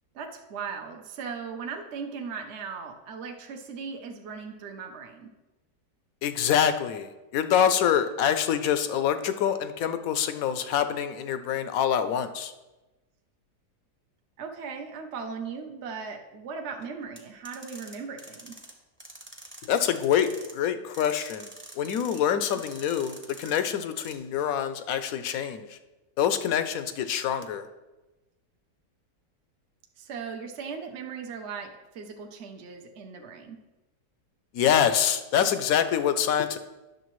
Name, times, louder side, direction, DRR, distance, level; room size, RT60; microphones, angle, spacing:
voice 1, 0.1-5.3 14.4-18.6 22.5-22.6 30.0-33.6, right 5 dB, 55° right, 3 dB, 0.8 m, -38 dB
voice 2, 6.2-12.5 19.6-21.5 21.8-25.8 26.2-27.7 34.5-36.6, left 9 dB, 70° left, 10 dB, 0.9 m, -25 dB
sound 1, 17.1-18.7 19.0-20.5 20.9-22.2 22.5-23.6 24.0-24.1, right 1 dB, 10° right, 0.6 m, -46 dB
11.0 x 6.5 x 3.1 m, 1.1 s
omnidirectional pair, 1.8 m